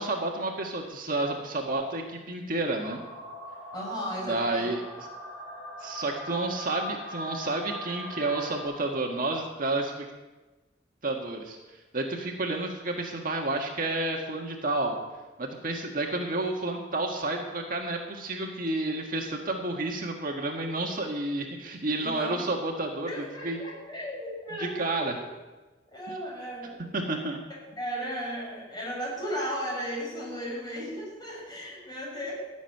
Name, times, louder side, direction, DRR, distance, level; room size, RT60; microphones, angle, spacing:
voice 1, 0.0-3.0 4.2-5.1 5.8-10.1 11.0-11.6 11.9-15.0 15.4-23.1 23.4-23.6 24.6-25.2 26.9-27.4, right 2 dB, 50° right, 1 dB, 1.6 m, -30 dB
sound 1, 2.8-8.6, left 1 dB, 5° left, 5.5 m, -40 dB
voice 2, 3.7-4.7 22.0-22.5 23.0-25.2 25.9-26.8 27.8-32.3, equal, 25° left, -4 dB, 6.8 m, -35 dB
15.0 x 7.3 x 9.7 m, 1.2 s
head